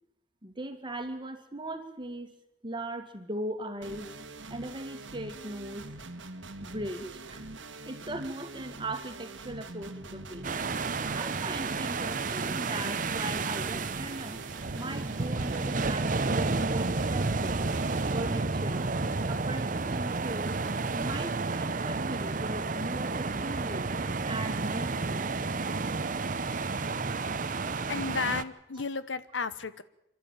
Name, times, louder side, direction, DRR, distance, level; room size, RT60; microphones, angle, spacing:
voice 1, 0.4-2.3 2.6-4.1 4.5-5.9 6.6-7.5 7.9-10.5 11.1-14.4 14.7-17.6 18.1-19.0 19.3-20.6 21.0-23.9 24.3-25.3, right 1 dB, 25° right, 7 dB, 2.0 m, -38 dB
sound 1, 3.8-18.1, right 2 dB, 85° right, 1.5 m, -44 dB
sound 2, 10.4-28.4, right 3 dB, 45° right, 0.8 m, -31 dB
voice 2, 27.4-29.8, left 5 dB, 80° left, 14 dB, 1.0 m, -34 dB
28.0 x 12.5 x 9.0 m, 0.85 s
head